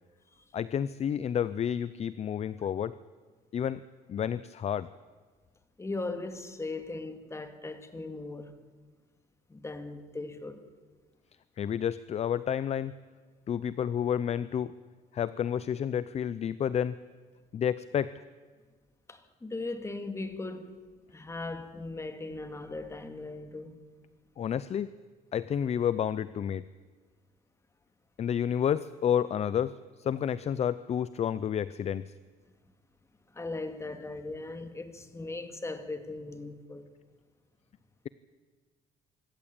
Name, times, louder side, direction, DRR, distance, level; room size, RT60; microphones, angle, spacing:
voice 1, 0.5-2.9 3.5-3.8 4.1-4.9 11.6-12.9 13.5-14.7 15.1-17.0 17.5-18.1 24.4-24.9 25.3-26.6 28.2-32.1, left 9 dB, 40° left, 0.5 m, -30 dB
voice 2, 5.8-8.5 9.5-10.6 19.1-20.8 21.1-23.8 33.3-36.9, left 2 dB, 15° left, 2.1 m, -38 dB
24.5 x 14.0 x 8.8 m
cardioid pair, 110°, 17 cm